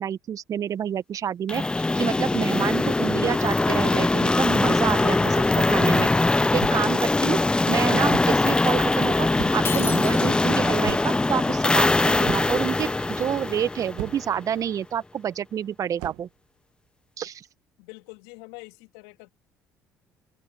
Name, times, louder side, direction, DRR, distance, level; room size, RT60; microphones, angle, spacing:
voice 1, 0.0-6.1 6.5-7.4 7.7-9.3 9.5-16.3 17.2-17.5, right 9 dB, 50° right, 1.5 m, -28 dB
sound 1, 1.5-14.4, left 2 dB, 10° left, 0.4 m, -22 dB
sound 2, 6.6-7.0 8.1-8.4 9.4-9.8 10.8-11.3 12.3-12.7 14.0-14.4 16.0-16.3, right 22 dB, 70° right, 1.8 m, -36 dB
Shatter, 9.6-10.7, left 4 dB, 30° left, 3.5 m, -32 dB
voice 2, 17.8-19.3, left 30 dB, 75° left, 3.2 m, -45 dB
open air
hypercardioid pair, 55°, 8 cm